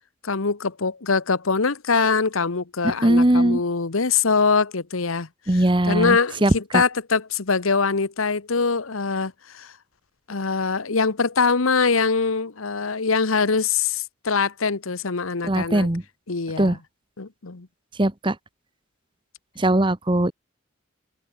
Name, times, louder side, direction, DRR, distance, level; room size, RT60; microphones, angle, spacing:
voice 1, 0.2-5.3 5.9-9.7 10.3-15.9 16.3-16.8 17.2-17.7, left 4 dB, 90° left, 1.2 m, -23 dB
voice 2, 3.0-3.6 5.5-6.8 15.4-16.0 16.6-16.8 18.0-18.4 19.6-20.3, right 1 dB, 25° right, 1.1 m, -20 dB
open air
head